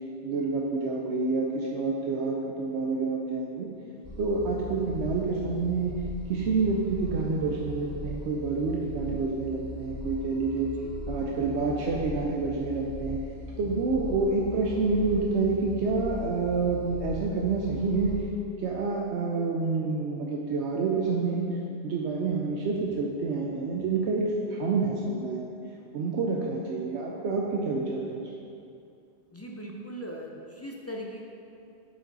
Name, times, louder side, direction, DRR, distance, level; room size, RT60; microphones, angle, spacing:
voice 1, 0.2-3.7 4.2-5.9 6.3-10.7 11.1-13.2 13.6-18.1 18.6-21.4 21.8-25.5 25.9-28.2, right 4 dB, 80° right, -2 dB, 0.9 m, -28 dB
sound 1, 4.0-18.3, left 2 dB, 45° left, 1.2 m, -39 dB
voice 2, 29.3-31.3, equal, 25° left, -1 dB, 0.3 m, -39 dB
7.5 x 5.1 x 4.0 m, 2.5 s
omnidirectional pair, 1.1 m